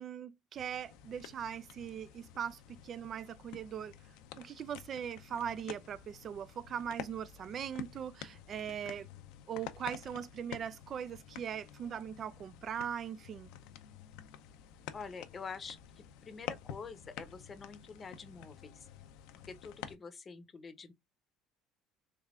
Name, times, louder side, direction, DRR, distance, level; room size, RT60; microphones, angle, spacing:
voice 1, 0.0-4.0 4.4-9.1 9.5-13.5, right 8 dB, 50° right, 0.3 m, -40 dB
sound 1, 0.6-20.0, left 10 dB, 75° left, 0.4 m, -50 dB
voice 2, 14.9-18.9 19.4-20.9, left 5 dB, 35° left, 0.7 m, -47 dB
3.4 x 3.2 x 2.3 m
supercardioid pair, 80°, 0 cm